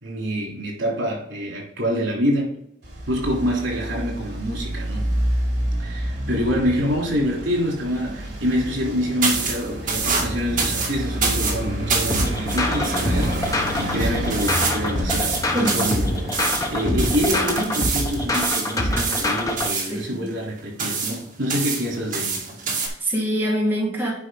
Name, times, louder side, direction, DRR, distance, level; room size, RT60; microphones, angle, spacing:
voice 1, 0.0-2.6 3.1-5.1 5.8-22.4, equal, 75° right, -2 dB, 3.3 m, -26 dB
Traffic noise roadway noise, 2.8-18.3, equal, 60° right, 3.5 m, -30 dB
sound 1, 9.2-22.9, right 4 dB, 45° right, 2.1 m, -27 dB
sound 2, 12.1-19.7, left 1 dB, 20° left, 1.1 m, -25 dB
voice 2, 19.9-20.3 22.8-24.1, equal, 10° right, -4 dB, 2.0 m, -24 dB
9.6 x 5.5 x 3.9 m, 0.71 s
head